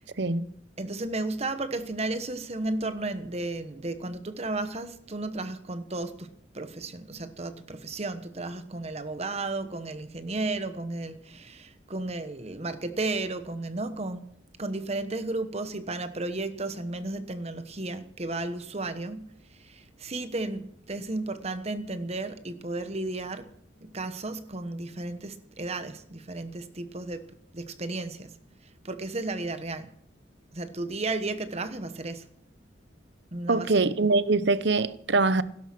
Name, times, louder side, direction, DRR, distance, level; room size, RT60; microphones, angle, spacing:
voice 1, 0.8-14.3 14.6-19.3 19.6-23.5 23.8-27.2 27.5-28.3 28.8-29.9 30.5-32.2 33.3-33.8, right 2 dB, 35° right, 1.1 m, -33 dB
voice 2, 33.5-35.4, right 3 dB, 65° right, 0.8 m, -23 dB
16.5 x 12.0 x 6.0 m
head